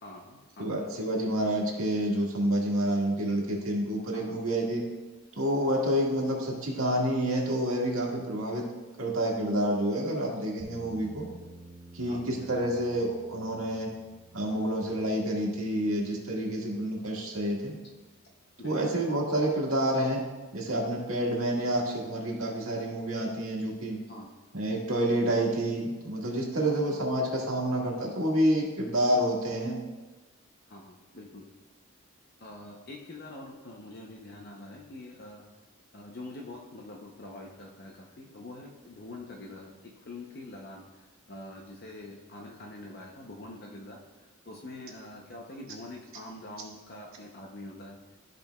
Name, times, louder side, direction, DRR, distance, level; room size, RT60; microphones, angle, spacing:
voice 1, 0.0-0.9 4.1-4.4 10.8-10.9 12.1-12.5 18.6-18.9 24.1-24.3 26.6-27.0 30.7-31.4 32.4-35.4 35.9-48.0, left 2 dB, 45° left, -1 dB, 0.7 m, -45 dB
voice 2, 0.6-4.8 5.4-8.6 9.0-11.3 11.9-13.9 14.3-17.7 18.6-20.3 20.5-24.0 24.5-29.8, right 1 dB, 80° right, -2 dB, 1.7 m, -28 dB
sound 1, 10.6-18.7, right 2 dB, 25° right, 0.6 m, -53 dB
13.5 x 5.2 x 2.3 m, 1.2 s
head